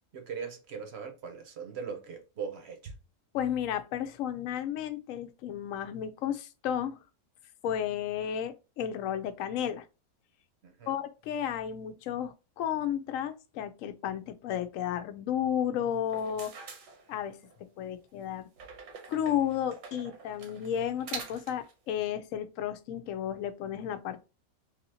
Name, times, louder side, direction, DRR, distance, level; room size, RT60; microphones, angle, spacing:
voice 1, 0.1-2.9 10.6-11.0, right 6 dB, 50° right, 0.9 m, -40 dB
voice 2, 3.3-7.0 7.6-9.8 10.9-16.5 17.1-17.4 17.8-18.5 19.1-24.2, left 9 dB, 70° left, 0.9 m, -33 dB
sound 1, 16.0-17.6 18.6-21.7, right 5 dB, 75° right, 1.3 m, -45 dB
3.5 x 2.7 x 2.7 m
omnidirectional pair, 1.6 m